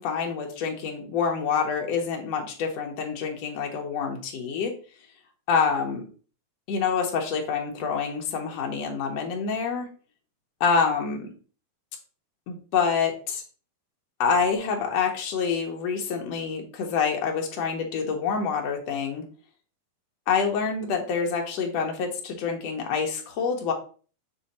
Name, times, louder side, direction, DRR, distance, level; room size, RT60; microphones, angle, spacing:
voice 1, 0.0-4.7 5.5-6.0 6.7-9.9 10.6-11.3 12.5-13.4 14.2-19.2 20.3-23.7, left 6 dB, 70° left, 2 dB, 1.6 m, -27 dB
7.7 x 3.0 x 4.1 m, 0.39 s
omnidirectional pair, 4.1 m